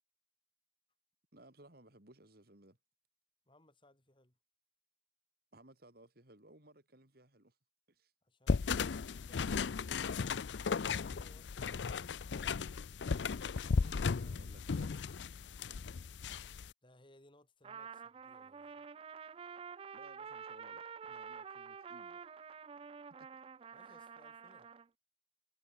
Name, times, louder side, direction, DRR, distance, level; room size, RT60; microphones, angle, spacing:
voice 1, 1.3-2.8 5.5-7.6 7.9-8.1 13.7-15.0 19.9-22.3 23.2-23.4 23.8-24.0, right 1 dB, 55° right, 3.6 m, -61 dB
voice 2, 3.5-4.4 8.2-9.8 16.5-18.9 23.7-24.7, left 1 dB, 25° left, 7.0 m, -66 dB
sound 1, 8.5-16.7, left 5 dB, 75° left, 0.5 m, -36 dB
Trumpet, 17.6-24.9, right 6 dB, 30° right, 0.3 m, -49 dB
head